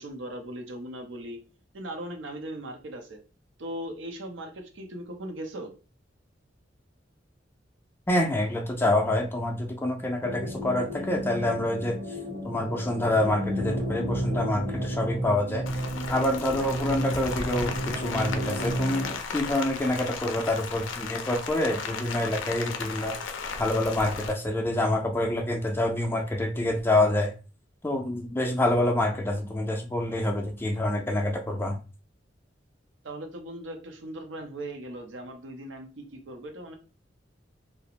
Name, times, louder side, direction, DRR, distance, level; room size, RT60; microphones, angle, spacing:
voice 1, 0.0-1.4 1.7-3.2 3.6-5.7 33.0-36.8, right 1 dB, 70° right, 4 dB, 0.6 m, -38 dB
voice 2, 8.1-12.0 12.4-15.6 16.1-27.3 27.8-31.8, left 1 dB, 10° left, 3 dB, 0.4 m, -27 dB
sound 1, 10.2-19.1, equal, 45° right, 1.0 m, -32 dB
Rain, 15.7-24.3, left 5 dB, 80° left, 0.4 m, -35 dB
2.4 x 2.1 x 2.8 m, 0.34 s
head